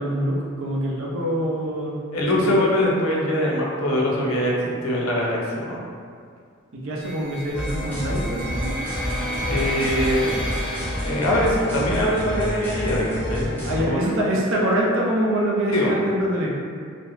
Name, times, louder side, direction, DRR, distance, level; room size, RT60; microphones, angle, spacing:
voice 1, 0.0-1.9 2.5-2.6 6.7-8.7 13.6-16.5, right 1 dB, 65° right, -4 dB, 0.5 m, -24 dB
voice 2, 2.1-5.8 9.4-10.3 11.0-13.5 13.8-14.2 15.7-15.9, left 1 dB, 90° left, -4 dB, 0.6 m, -23 dB
sound 1, 7.0-12.0, right 1 dB, 20° right, 0.8 m, -33 dB
sound 2, 7.5-13.8, equal, 10° left, 0.6 m, -28 dB
2.4 x 2.1 x 3.0 m, 2.2 s
head